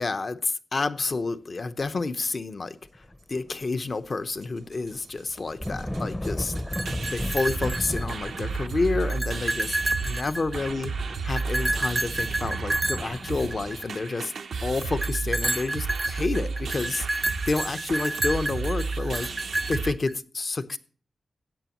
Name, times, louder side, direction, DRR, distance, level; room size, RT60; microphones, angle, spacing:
voice 1, 0.0-10.9 11.2-14.3 14.6-19.3 19.7-20.8, left 3 dB, 50° left, 11 dB, 0.8 m, -29 dB
sound 1, 3.0-3.9 4.2-13.7, left 1 dB, 10° left, 0.7 m, -36 dB
sound 2, 4.4-4.5 4.7-5.1 5.3-5.4 5.6-19.9, right 4 dB, 85° right, 0.8 m, -33 dB
sound 3, 6.6-8.5 8.9-10.9 11.4-14.1 15.0-20.1, right 2 dB, 20° right, 0.4 m, -30 dB
16.5 x 9.1 x 3.0 m, 0.39 s
cardioid pair, 70°, 0 cm